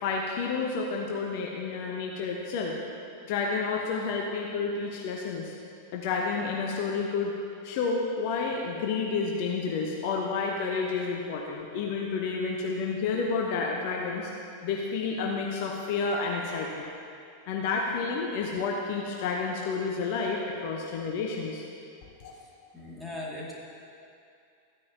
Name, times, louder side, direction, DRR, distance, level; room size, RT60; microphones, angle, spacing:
voice 1, 0.0-2.7 3.3-5.5 5.9-7.3 7.6-14.3 14.6-16.9 17.5-21.6 22.2-22.3, left 4 dB, 50° left, -1 dB, 0.9 m, -30 dB
voice 2, 22.3-23.5, left 1 dB, ahead, -7 dB, 2.3 m, -40 dB
14.0 x 9.6 x 2.8 m, 2.5 s
figure-of-eight pair, 90°, 0 cm